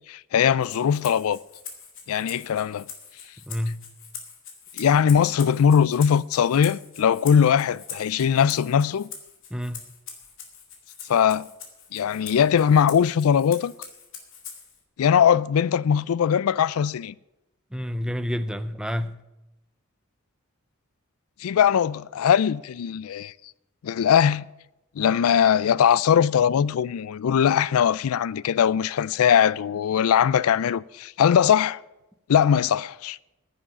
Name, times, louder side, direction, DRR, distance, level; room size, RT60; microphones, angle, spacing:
voice 1, 0.1-1.4 2.1-2.9 4.7-9.1 11.1-11.5 11.9-13.7 15.0-17.1 21.4-23.3 23.8-24.5 25.0-31.8 32.3-33.2, left 8 dB, 80° left, 0.4 m, -20 dB
Rattle (instrument), 0.6-14.8, left 7 dB, 65° left, 2.3 m, -43 dB
voice 2, 3.5-3.9 9.5-9.8 17.7-19.2, equal, 5° right, 0.5 m, -29 dB
10.5 x 7.5 x 9.6 m
head